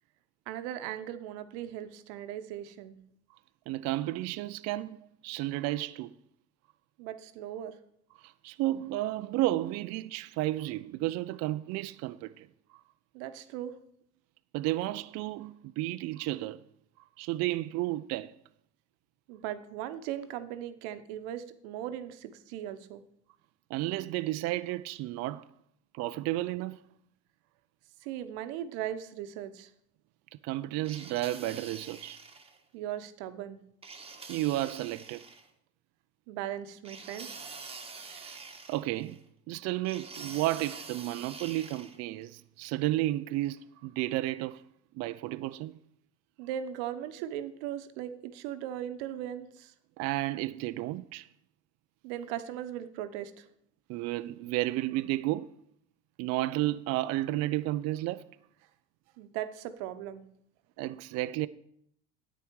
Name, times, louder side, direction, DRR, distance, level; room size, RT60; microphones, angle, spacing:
voice 1, 0.5-3.0 7.0-7.8 13.1-13.7 19.3-23.0 28.0-29.7 32.7-33.6 36.3-37.3 46.4-49.7 52.0-53.4 59.2-60.2, right 11 dB, 70° right, 1.0 m, -38 dB
voice 2, 3.7-6.1 8.2-12.8 14.5-16.6 17.2-18.3 23.7-25.4 25.9-26.8 30.4-32.2 34.3-35.2 38.0-38.4 38.7-39.2 39.5-44.6 44.9-45.8 50.0-51.3 53.9-55.5 56.2-58.2 60.8-61.5, right 16 dB, 50° right, 0.4 m, -32 dB
sound 1, 30.8-32.6 33.8-35.5 36.8-39.2 39.8-42.0, right 4 dB, 15° right, 1.3 m, -46 dB
9.8 x 8.6 x 4.7 m
hypercardioid pair, 85°, 35 cm